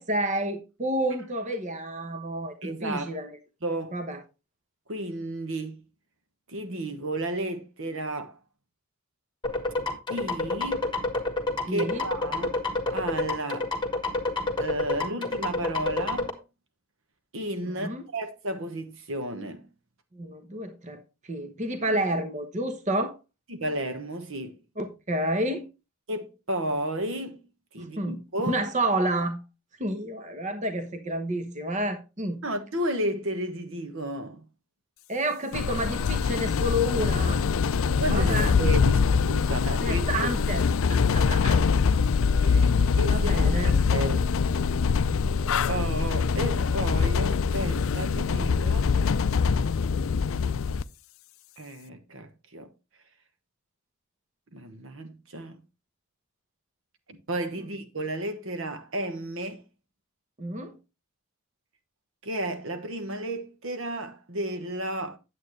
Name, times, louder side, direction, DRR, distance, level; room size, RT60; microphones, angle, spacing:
voice 1, 0.0-3.4 3.9-4.2 11.7-12.1 17.7-18.0 20.1-23.1 24.8-25.6 27.8-28.2 28.5-29.4 29.8-32.4 35.1-37.4 38.1-38.5 39.8-41.6 43.0-43.8 44.9-45.0 48.5-49.0 60.4-60.8, right 1 dB, 35° right, 1.0 m, -30 dB
voice 2, 2.6-3.2 3.6-4.0 4.9-5.8 6.5-8.4 10.1-10.9 11.7-12.5 12.9-13.7 14.6-16.4 17.3-19.7 23.5-24.6 26.1-27.5 27.7-28.6 32.4-34.4 37.9-40.3 42.3-42.7 43.0-44.2 45.7-48.8 51.6-52.7 54.5-55.6 57.1-59.6 62.2-65.2, right 1 dB, 65° right, 1.2 m, -33 dB
sound 1, 9.4-16.3, left 2 dB, 20° left, 1.4 m, -28 dB
sound 2, 35.5-50.8, left 5 dB, 65° left, 0.4 m, -24 dB
9.1 x 8.1 x 3.2 m
head